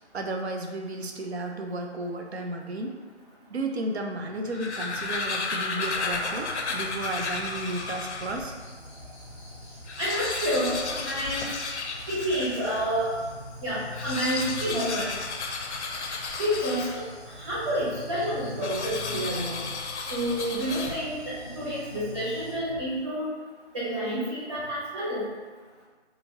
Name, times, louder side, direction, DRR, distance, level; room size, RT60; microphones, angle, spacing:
voice 1, 0.0-3.0 3.5-8.5, right 2 dB, 65° right, 3 dB, 0.5 m, -33 dB
sound 1, 4.3-8.5 9.0-9.1 9.3-9.4 9.8-12.9 13.8-17.3 18.6-21.3, left 4 dB, 70° left, 0.5 m, -33 dB
sound 2, 5.9-22.5, left 1 dB, 10° left, 0.8 m, -44 dB
voice 2, 10.0-11.5 12.1-13.1 13.6-15.1 16.4-17.0 17.4-19.6 20.1-23.3 23.7-25.2, equal, 30° right, -12 dB, 1.0 m, -29 dB
2.7 x 2.5 x 2.9 m, 1.4 s
figure-of-eight pair, 160°, 35 cm